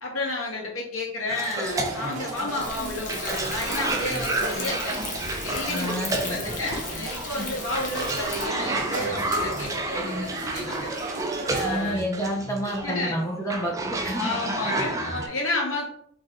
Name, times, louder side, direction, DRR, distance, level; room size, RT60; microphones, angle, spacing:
voice 1, 0.0-5.0 5.4-10.9 11.5-12.0 12.8-13.2 14.1-15.9, left 2 dB, 85° left, -2 dB, 1.5 m, -31 dB
Cough, 1.3-15.3, right 2 dB, 15° right, 0.5 m, -31 dB
sound 1, 1.6-12.0, right 2 dB, 40° right, 0.8 m, -36 dB
Thunder, 2.6-8.5, left 3 dB, 40° left, 0.9 m, -36 dB
voice 2, 5.7-6.6 11.6-14.5 14.9-15.0, equal, 15° left, -1 dB, 1.0 m, -30 dB
3.9 x 3.3 x 3.7 m, 0.66 s
head